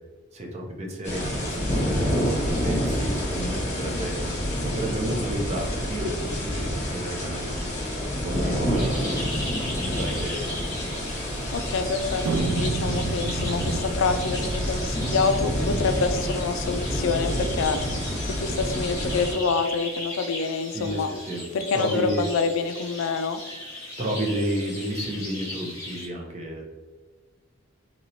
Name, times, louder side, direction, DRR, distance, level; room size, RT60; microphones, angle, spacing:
voice 1, 0.3-4.2 4.6-9.0 9.8-10.4 20.7-21.5 21.7-22.2 24.0-26.6, right 1 dB, 30° right, -1 dB, 0.6 m, -31 dB
sound 1, 1.0-19.3, equal, 35° left, 1.0 m, -28 dB
sound 2, 8.7-26.1, left 1 dB, 15° left, 0.8 m, -38 dB
voice 2, 11.5-17.8 18.2-21.1 21.5-23.4, left 4 dB, 70° left, 8 dB, 0.3 m, -27 dB
sound 3, 12.2-15.8, right 3 dB, 80° right, 0.3 m, -30 dB
3.0 x 2.9 x 2.7 m, 1.4 s
head